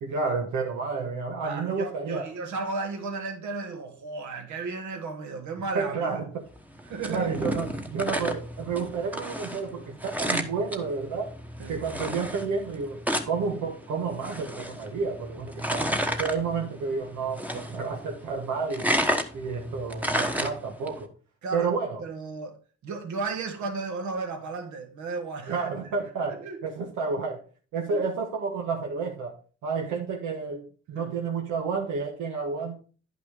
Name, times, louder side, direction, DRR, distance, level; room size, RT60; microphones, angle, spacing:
voice 1, 0.0-2.3 5.7-6.5 7.1-11.3 11.7-15.9 16.2-18.9 19.3-21.1 21.5-22.0 25.5-27.4 27.7-29.3 29.6-32.7, right 5 dB, 90° right, 1.4 m, -30 dB
voice 2, 1.4-6.1 6.9-7.3 11.6-11.8 21.4-21.7 22.0-22.6 22.8-25.7 26.3-26.6 27.9-28.0 30.9-31.1, right 3 dB, 75° right, 1.8 m, -34 dB
sound 1, 6.6-21.0, equal, 5° right, 1.1 m, -32 dB
10.0 x 6.0 x 3.6 m
cardioid pair, 90°, 30 cm